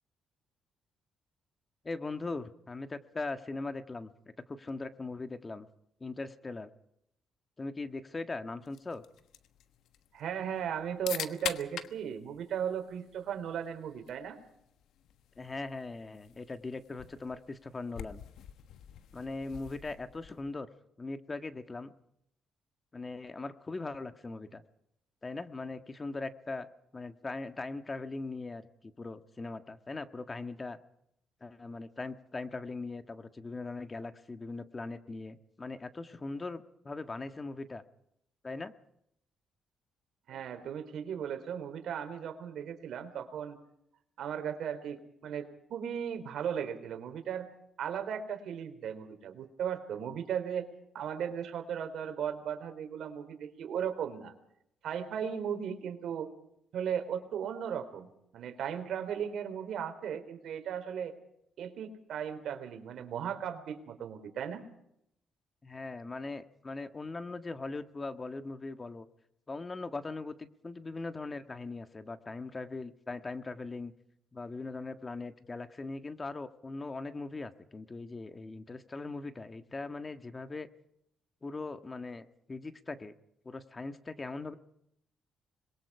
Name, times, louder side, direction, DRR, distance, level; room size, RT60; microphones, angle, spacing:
voice 1, 1.8-5.7 6.0-6.7 7.6-9.0 15.4-18.2 19.1-20.7 21.0-21.9 22.9-24.6 25.2-26.7 26.9-30.8 31.4-37.8 38.4-38.7 65.6-69.1 69.5-73.9 74.3-80.7 81.4-83.1 83.4-84.6, left 3 dB, 25° left, 10 dB, 1.6 m, -40 dB
sound 1, 8.6-20.6, left 10 dB, 80° left, 1.3 m, -46 dB
voice 2, 10.1-14.4 40.3-43.6 44.2-47.5 47.8-50.7 50.9-54.3 54.8-56.3 56.7-58.1 58.3-61.1 61.6-64.6, right 8 dB, 70° right, 7 dB, 3.7 m, -36 dB
26.5 x 22.0 x 4.9 m, 0.76 s
cardioid pair, 90°, 0 cm